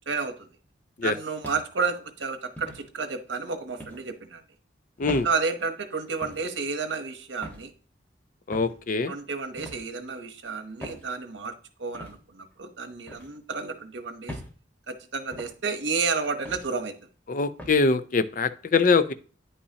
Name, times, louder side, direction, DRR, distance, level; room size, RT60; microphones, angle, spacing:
voice 1, 0.1-0.5 1.0-4.4 5.2-7.7 9.1-11.5 11.8-14.4 14.9-17.0, right 4 dB, 85° right, 8 dB, 1.0 m, -31 dB
sound 1, 1.4-1.9 2.6-2.8 3.8-4.0 5.0-5.3 6.2-6.5 7.4-7.7 8.5-8.8 9.6-9.8 10.8-11.0 11.9-12.1 13.1-13.3 14.3-14.5 15.3-15.5 16.4-16.7 17.6-17.8, equal, 10° left, 1.3 m, -40 dB
voice 2, 8.5-9.1 17.3-19.1, left 4 dB, 45° left, 13 dB, 0.5 m, -23 dB
9.4 x 5.5 x 2.8 m, 0.39 s
head